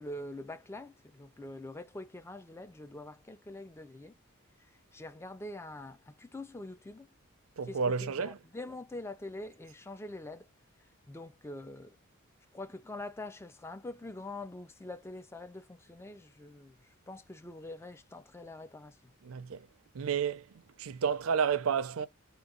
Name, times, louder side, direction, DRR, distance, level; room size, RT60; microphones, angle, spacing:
voice 1, 0.0-4.2 4.6-7.1 7.6-10.5 11.1-12.0 12.5-19.1, left 2 dB, 10° left, 0.3 m, -45 dB
voice 2, 7.6-8.4 19.2-19.7 19.9-20.5 20.8-22.1, right 6 dB, 70° right, 0.5 m, -31 dB
3.8 x 2.3 x 3.7 m
head